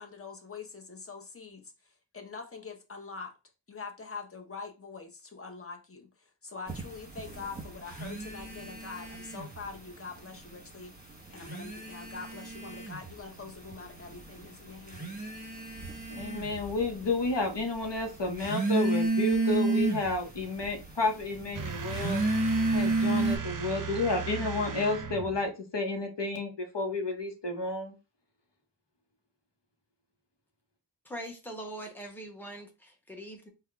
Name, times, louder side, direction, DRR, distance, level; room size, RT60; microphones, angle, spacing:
voice 1, 0.0-3.3 3.7-15.1, left 4 dB, 30° left, 0.8 m, -44 dB
sound 1, 6.7-9.8 10.0-10.8 11.3-23.4, right 2 dB, 20° right, 1.2 m, -32 dB
voice 2, 16.1-22.2 22.7-27.9, left 2 dB, 75° left, 0.9 m, -31 dB
sound 2, 21.5-25.5, right 6 dB, 50° right, 0.5 m, -37 dB
voice 3, 31.0-33.5, right 1 dB, 5° left, 0.9 m, -42 dB
3.5 x 2.2 x 3.5 m
wide cardioid pair, 55°, 42 cm